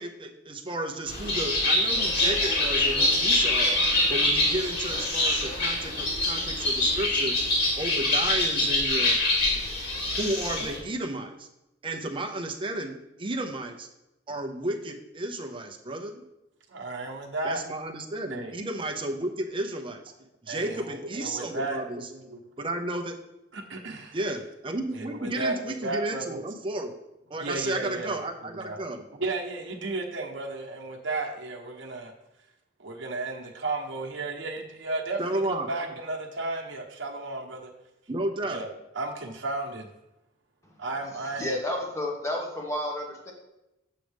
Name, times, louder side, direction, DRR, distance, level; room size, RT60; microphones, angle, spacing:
voice 1, 0.0-3.8 4.1-7.3 7.8-9.2 10.2-11.5 11.8-13.9 14.3-16.2 17.4-20.0 20.4-22.0 22.6-23.1 24.1-26.9 27.3-29.0 35.2-35.7 38.1-38.6, right 1 dB, 30° right, 3 dB, 0.7 m, -32 dB
Bird, 1.1-10.8, left 1 dB, 60° left, 2.6 m, -25 dB
voice 2, 16.7-17.6 18.3-18.6 20.5-22.4 23.5-24.2 24.9-26.4 27.4-28.2 28.5-28.8 29.1-32.1 32.8-37.7 38.5-38.7 38.9-39.9 40.8-41.6, right 2 dB, 75° right, 0 dB, 1.1 m, -34 dB
voice 3, 41.4-43.3, left 1 dB, 15° left, -1 dB, 1.3 m, -31 dB
7.6 x 6.3 x 3.5 m, 0.92 s
head